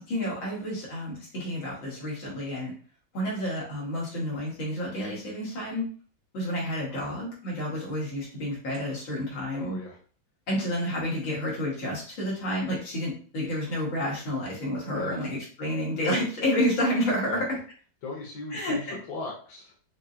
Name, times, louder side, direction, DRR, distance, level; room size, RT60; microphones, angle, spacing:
voice 1, 0.0-2.7 3.1-5.9 6.3-9.8 10.5-17.5 18.5-19.0, left 1 dB, 90° left, -5 dB, 2.5 m, -30 dB
voice 2, 9.5-10.0 14.9-15.2 17.2-17.4 18.0-19.7, left 3 dB, 65° left, -2 dB, 1.6 m, -38 dB
5.8 x 2.1 x 2.7 m, 0.42 s
omnidirectional pair, 2.1 m